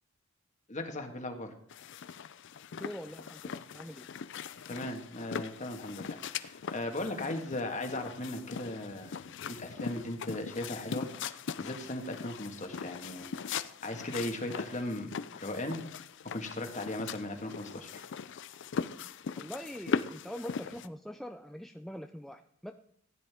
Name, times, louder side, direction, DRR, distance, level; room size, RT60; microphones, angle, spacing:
voice 1, 0.7-1.5 4.7-9.2 9.5-13.3 13.8-15.1 15.4-15.8 16.3-18.0, left 1 dB, 35° left, 5 dB, 1.6 m, -37 dB
sound 1, 1.7-20.9, left 6 dB, 60° left, 0.5 m, -40 dB
voice 2, 2.8-4.1 19.3-22.7, equal, ahead, 5 dB, 0.4 m, -43 dB
15.5 x 10.5 x 3.5 m, 0.65 s
head